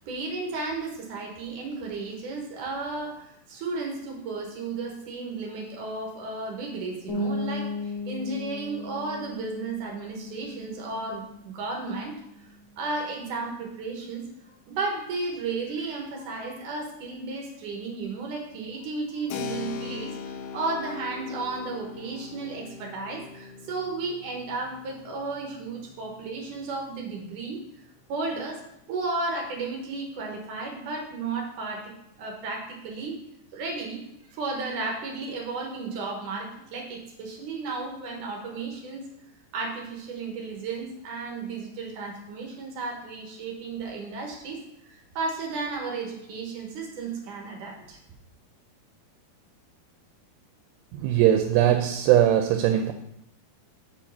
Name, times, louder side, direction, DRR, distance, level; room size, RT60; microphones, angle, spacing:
voice 1, 0.1-12.2 12.8-27.6 28.1-33.2 33.5-34.0 34.3-39.0 39.5-48.0, right 3 dB, 65° right, 0 dB, 2.3 m, -34 dB
sound 1, 7.1-12.7, left 1 dB, 35° left, 2.5 m, -36 dB
Keyboard (musical), 19.3-27.7, left 6 dB, 85° left, 2.8 m, -41 dB
voice 2, 50.9-52.9, right 11 dB, 85° right, 6 dB, 2.6 m, -20 dB
7.6 x 4.5 x 5.5 m, 0.81 s
omnidirectional pair, 4.7 m